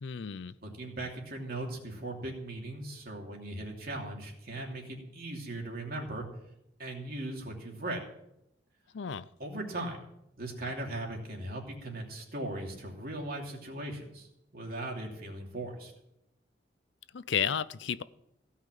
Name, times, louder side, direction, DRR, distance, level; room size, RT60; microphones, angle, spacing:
voice 1, 0.0-0.5 8.9-9.3 17.1-18.0, left 7 dB, 75° left, 17 dB, 0.5 m, -32 dB
voice 2, 0.6-6.2 6.8-8.0 9.4-10.0 10.4-14.3 14.5-15.9, right 1 dB, 55° right, 0 dB, 2.8 m, -38 dB
16.5 x 5.8 x 9.1 m, 0.82 s
head